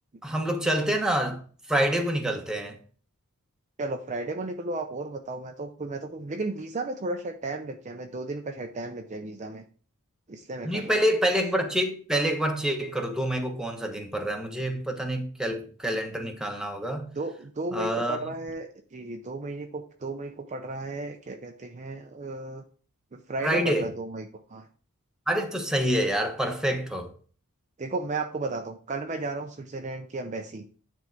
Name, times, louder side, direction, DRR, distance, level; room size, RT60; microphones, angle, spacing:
voice 1, 0.2-1.4 1.7-2.8 10.6-17.1 17.7-18.3 23.4-23.9 25.3-27.1, equal, 5° right, 1.0 m, -27 dB
voice 2, 3.8-9.6 10.3-11.0 17.1-22.6 23.1-24.7 27.8-30.7, right 2 dB, 35° right, 0.5 m, -34 dB
9.7 x 3.6 x 4.5 m
head